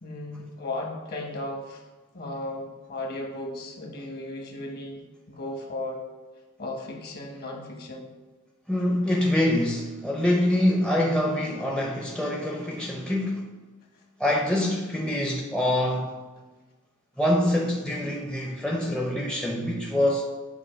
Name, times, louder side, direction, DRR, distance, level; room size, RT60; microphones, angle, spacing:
voice 1, 0.0-1.8 2.1-5.0 5.3-6.0 6.6-8.1, left 2 dB, 45° left, 2 dB, 1.0 m, -35 dB
voice 2, 8.7-13.4 14.2-16.2 17.2-20.3, left 1 dB, 5° left, -1 dB, 0.4 m, -25 dB
7.0 x 2.6 x 5.5 m, 1.2 s
head